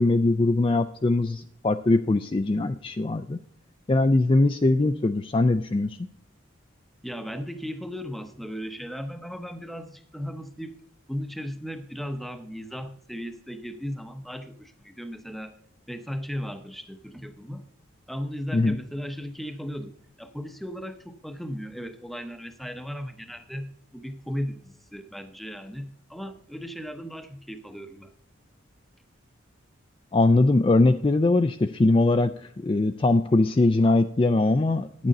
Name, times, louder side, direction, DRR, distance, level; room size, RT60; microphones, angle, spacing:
voice 1, 0.0-3.4 3.9-6.1 18.5-18.8 30.1-35.1, left 2 dB, 25° left, 8 dB, 0.3 m, -21 dB
voice 2, 7.0-10.8 11.1-15.6 15.9-17.6 18.1-28.1, equal, ahead, 9 dB, 0.7 m, -36 dB
10.5 x 8.9 x 4.0 m, 0.63 s
head